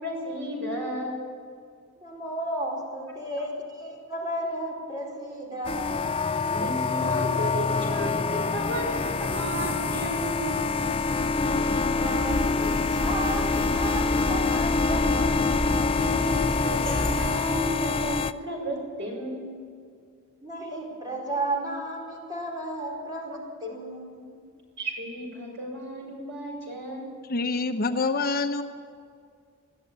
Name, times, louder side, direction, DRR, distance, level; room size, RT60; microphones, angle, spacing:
voice 1, 0.0-1.1 6.5-10.7 15.9-16.4 16.6-19.5 24.8-27.1, right 1 dB, 55° right, 0 dB, 6.5 m, -33 dB
voice 2, 2.0-6.0 11.6-15.7 20.4-24.4, right 1 dB, 20° right, -1 dB, 4.6 m, -34 dB
sound 1, 5.6-18.3, left 4 dB, 25° left, 0.4 m, -26 dB
sound 2, 12.1-17.3, equal, 5° left, 4.6 m, -32 dB
voice 3, 27.3-28.6, left 3 dB, 45° left, 6 dB, 0.9 m, -26 dB
21.5 x 13.5 x 8.9 m, 2.2 s
head